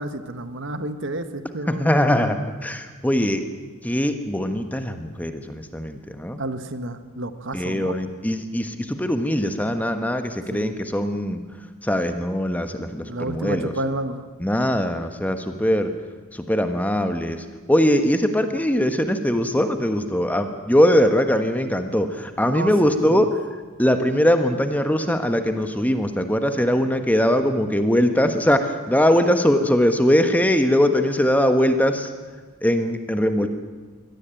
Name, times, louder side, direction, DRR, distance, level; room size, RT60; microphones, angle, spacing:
voice 1, 0.0-1.9 6.4-7.9 10.5-10.8 13.1-14.2 22.4-23.3, right 2 dB, 55° right, 10 dB, 1.3 m, -30 dB
voice 2, 1.7-3.4 3.8-6.4 7.5-11.4 11.8-13.7 14.4-15.9 16.3-17.4 17.7-23.3 23.8-32.1 32.6-33.5, equal, 5° left, 7 dB, 1.3 m, -21 dB
23.5 x 17.5 x 9.0 m, 1.4 s
head